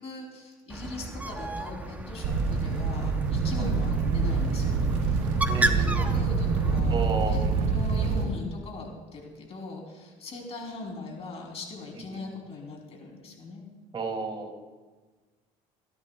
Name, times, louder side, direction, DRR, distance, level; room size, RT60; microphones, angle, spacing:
voice 1, 0.0-5.3 5.6-7.0 7.3-7.4 7.7-13.6, left 3 dB, 45° left, 0 dB, 3.4 m, -40 dB
Bird, 0.7-6.8, right 2 dB, 10° right, 0.8 m, -33 dB
sound 1, 2.2-8.2, right 4 dB, 85° right, 3.2 m, -26 dB
voice 2, 5.5-6.1 6.9-7.7 11.9-12.3 13.9-14.5, right 3 dB, 35° right, 2 dB, 2.6 m, -33 dB
27.5 x 10.5 x 2.3 m, 1.3 s
cardioid pair, 115°, 15 cm